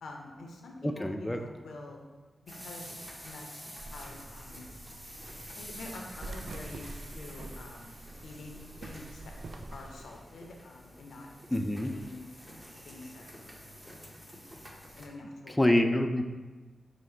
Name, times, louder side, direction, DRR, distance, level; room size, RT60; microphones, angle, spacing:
voice 1, 0.0-2.0 2.4-4.7 5.6-7.9 8.2-9.3 9.7-11.5 11.8-12.3 12.8-13.7 14.3-14.4 14.7-15.6, left 2 dB, 85° left, 1 dB, 0.6 m, -47 dB
voice 2, 0.8-1.4 11.5-11.9 15.6-16.3, left 1 dB, 15° left, 5 dB, 0.3 m, -26 dB
sound 1, 2.5-15.1, equal, 5° right, 0.8 m, -48 dB
sound 2, 3.8-10.2, right 2 dB, 65° right, 0.3 m, -46 dB
4.8 x 2.1 x 4.3 m, 1.3 s
cardioid pair, 55°, 0 cm